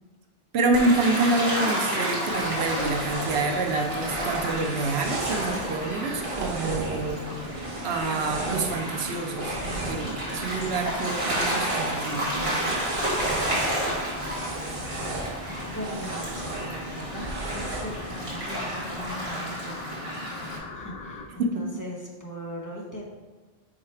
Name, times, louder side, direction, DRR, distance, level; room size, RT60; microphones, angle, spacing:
voice 1, 0.5-7.2 7.8-12.8 21.4-21.6, right 3 dB, 90° right, 4 dB, 1.0 m, -27 dB
Gull seagull / Waves surf, 0.7-20.6, equal, 30° right, 1.6 m, -31 dB
sound 1, 2.3-19.3, right 2 dB, 60° right, 1.1 m, -37 dB
voice 2, 13.7-14.4 14.8-23.0, equal, 20° left, -4 dB, 0.9 m, -40 dB
sound 2, 15.4-21.3, left 4 dB, 75° left, 0.9 m, -44 dB
4.9 x 4.8 x 4.4 m, 1.3 s
omnidirectional pair, 1.1 m